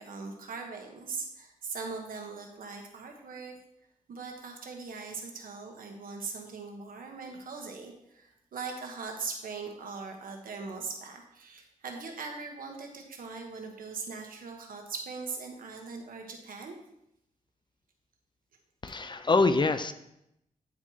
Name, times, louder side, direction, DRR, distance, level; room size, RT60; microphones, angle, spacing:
voice 1, 0.0-3.6 4.1-16.8, right 4 dB, 80° right, 3 dB, 1.1 m, -40 dB
voice 2, 18.8-19.9, left 3 dB, 35° left, 10 dB, 0.5 m, -25 dB
9.4 x 4.5 x 2.8 m, 0.81 s
cardioid pair, 65°, 14 cm